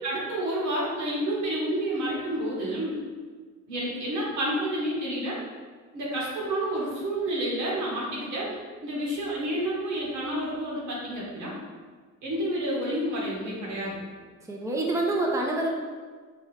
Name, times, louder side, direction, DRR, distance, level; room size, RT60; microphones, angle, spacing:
voice 1, 0.0-3.0 3.7-5.4 5.9-8.5 8.8-11.5 12.2-13.9, right 1 dB, 80° right, -5 dB, 1.5 m, -29 dB
voice 2, 14.4-15.8, right 2 dB, 10° right, -1 dB, 0.6 m, -27 dB
4.6 x 2.9 x 3.3 m, 1.5 s
cardioid pair, 90°, 30 cm